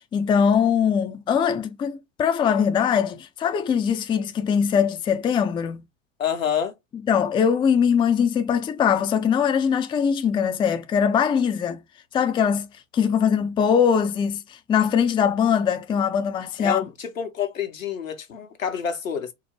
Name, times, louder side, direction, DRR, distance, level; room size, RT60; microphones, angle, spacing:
voice 1, 0.1-5.8 7.1-11.8 12.1-12.7 12.9-14.4 14.7-16.9, left 7 dB, 15° left, 0.4 m, -21 dB
voice 2, 6.2-6.7 16.6-19.3, left 7 dB, 90° left, 1.1 m, -28 dB
4.4 x 2.1 x 3.0 m
hypercardioid pair, 95°, 39 cm